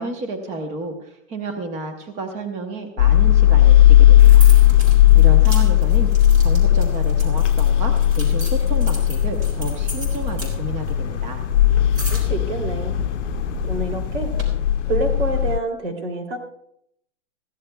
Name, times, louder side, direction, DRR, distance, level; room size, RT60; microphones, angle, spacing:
voice 1, 0.0-4.5 5.1-6.1 6.4-11.4, right 2 dB, 20° right, 6 dB, 1.0 m, -31 dB
sound 1, 3.0-15.6, left 12 dB, 85° left, 0.5 m, -16 dB
sound 2, 4.2-14.4, equal, 45° right, 3.9 m, -32 dB
voice 2, 12.1-13.0 13.6-14.3 14.8-16.4, right 3 dB, 75° right, 3 dB, 3.1 m, -27 dB
22.0 x 15.0 x 2.3 m, 0.74 s
hypercardioid pair, 160°, 35 cm